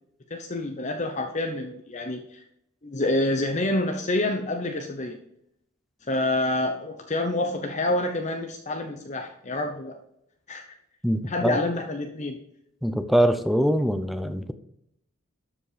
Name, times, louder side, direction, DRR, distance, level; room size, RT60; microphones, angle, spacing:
voice 1, 0.3-2.4 2.8-5.2 6.1-10.0 10.5-10.7 11.2-12.4, left 2 dB, 35° left, 4 dB, 0.8 m, -27 dB
voice 2, 11.0-11.6 12.8-14.5, equal, ahead, 9 dB, 0.6 m, -23 dB
12.5 x 5.1 x 5.0 m, 0.76 s
head